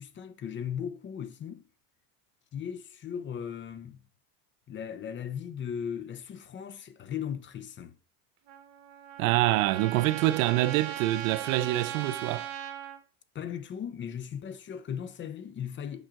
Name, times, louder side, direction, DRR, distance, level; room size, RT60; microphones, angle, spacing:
voice 1, 0.0-1.7 2.5-4.0 4.7-8.0 13.3-16.1, left 8 dB, 30° left, 0.7 m, -37 dB
Trumpet, 8.5-13.0, right 10 dB, 65° right, 1.5 m, -38 dB
voice 2, 9.2-12.5, right 16 dB, 90° right, 0.6 m, -26 dB
9.0 x 5.4 x 3.7 m
cardioid pair, 135°, 40 cm